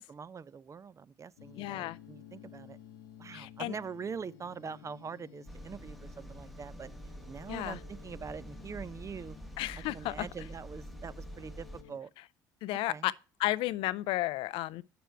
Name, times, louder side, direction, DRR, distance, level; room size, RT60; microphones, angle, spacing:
voice 1, 0.1-2.8 3.2-6.9 7.3-9.4 9.9-12.1 12.9-13.1, right 6 dB, 30° right, 0.5 m, -43 dB
sound 1, 1.4-12.0, left 11 dB, 85° left, 0.8 m, -54 dB
voice 2, 1.6-2.0 3.3-3.7 7.5-7.8 9.6-10.3 12.6-13.1 13.4-14.8, left 17 dB, 65° left, 0.4 m, -33 dB
sound 2, 5.5-11.8, right 1 dB, ahead, 0.9 m, -47 dB
9.0 x 6.8 x 4.4 m
hypercardioid pair, 60°, 10 cm